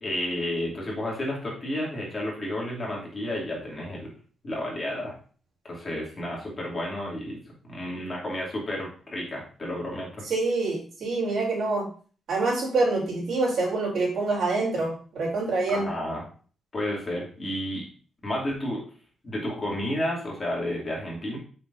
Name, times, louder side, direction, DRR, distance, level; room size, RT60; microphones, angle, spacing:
voice 1, 0.0-4.1 4.4-5.1 5.6-7.4 7.7-10.2 15.7-16.2 16.7-17.8 18.2-18.8 19.2-21.4, left 1 dB, 30° left, -4 dB, 2.7 m, -31 dB
voice 2, 10.2-11.8 12.3-15.9, right 3 dB, 65° right, -4 dB, 3.1 m, -26 dB
7.3 x 5.9 x 2.6 m, 0.41 s
cardioid pair, 120°, 0 cm